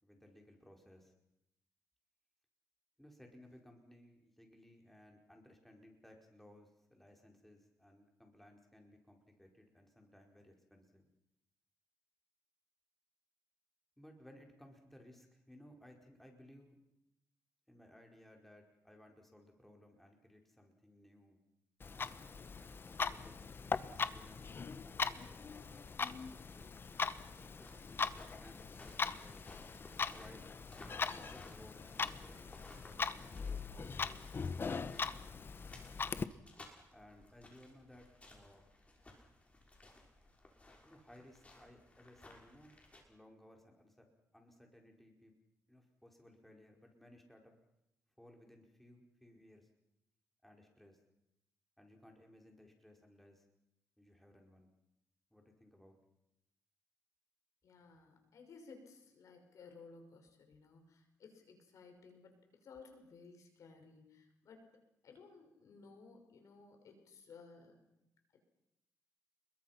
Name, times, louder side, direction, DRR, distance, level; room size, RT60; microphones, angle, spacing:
voice 1, 0.0-1.1 3.0-11.1 14.0-16.8 17.7-21.4 21.9-22.3 22.8-24.5 24.8-26.8 27.2-29.4 30.1-30.5 31.0-34.3 36.9-38.7 40.8-42.7 43.1-44.1 44.3-45.3 45.7-47.5 48.2-49.7 50.4-51.0 51.8-53.4 54.0-54.7 55.3-56.0, left 1 dB, 5° left, 2 dB, 4.8 m, -61 dB
Clock, 21.8-36.2, left 5 dB, 40° left, 1.1 m, -41 dB
sound 1, 27.6-43.0, left 2 dB, 20° left, 6.0 m, -60 dB
voice 2, 57.6-64.7 65.0-67.9, left 4 dB, 70° left, 5 dB, 5.7 m, -58 dB
28.5 x 22.0 x 5.9 m, 0.84 s
cardioid pair, 90°, 6 cm